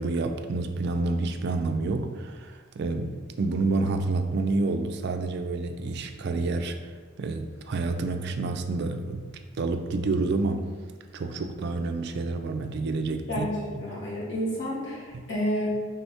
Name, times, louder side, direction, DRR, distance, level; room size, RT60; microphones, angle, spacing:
voice 1, 0.0-9.3 9.6-10.8 11.1-13.9 15.1-15.2, right 3 dB, 50° right, 6 dB, 0.3 m, -29 dB
voice 2, 13.3-15.7, equal, 55° left, -7 dB, 1.4 m, -30 dB
4.1 x 3.4 x 3.4 m, 1.5 s
head